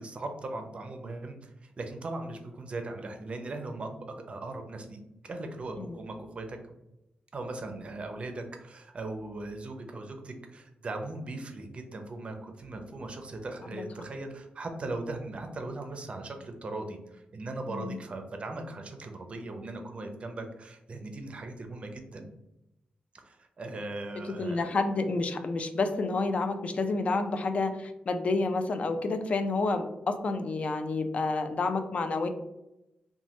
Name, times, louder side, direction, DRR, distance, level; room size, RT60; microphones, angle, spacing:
voice 1, 0.0-3.9 4.3-5.0 5.2-6.7 7.3-22.3 23.2-24.7, right 2 dB, 40° right, 5 dB, 0.4 m, -39 dB
voice 2, 17.7-18.0 24.4-32.3, left 3 dB, 45° left, 8 dB, 0.3 m, -29 dB
3.1 x 2.2 x 2.8 m, 0.91 s
wide cardioid pair, 125°, 3 cm